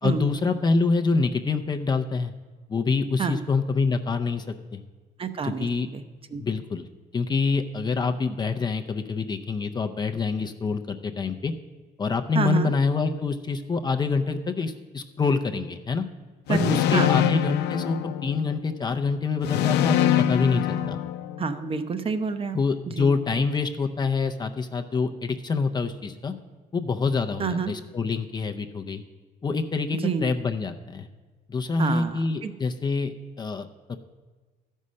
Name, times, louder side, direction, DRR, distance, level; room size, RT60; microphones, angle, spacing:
voice 1, 0.0-2.3 2.7-4.4 4.7-4.8 5.4-5.9 6.4-6.9 7.1-11.5 12.0-16.0 16.5-21.0 22.5-26.3 26.7-29.0 29.4-31.1 31.5-34.0, left 4 dB, 25° left, 6 dB, 0.5 m, -26 dB
voice 2, 5.2-5.7 5.9-6.0 6.3-6.4 12.3-12.7 16.5-17.1 21.4-22.6 23.0-23.1 27.4-27.7 30.0-30.2 31.8-32.5, right 6 dB, 35° right, 10 dB, 0.8 m, -27 dB
sound 1, 16.5-18.7 19.4-21.6, left 10 dB, 85° left, 0.6 m, -24 dB
12.5 x 5.5 x 6.3 m, 1.4 s
cardioid pair, 110°, 17 cm